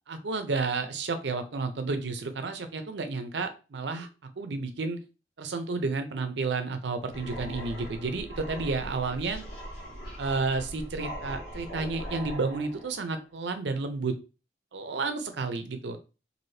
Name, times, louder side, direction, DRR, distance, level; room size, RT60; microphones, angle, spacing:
voice 1, 0.1-4.1 4.4-5.0 5.4-9.4 10.2-14.1 14.7-16.0, right 3 dB, 80° right, 8 dB, 0.5 m, -31 dB
sound 1, 7.1-13.1, equal, 65° left, 1.5 m, -40 dB
3.2 x 2.6 x 2.7 m, 0.32 s
head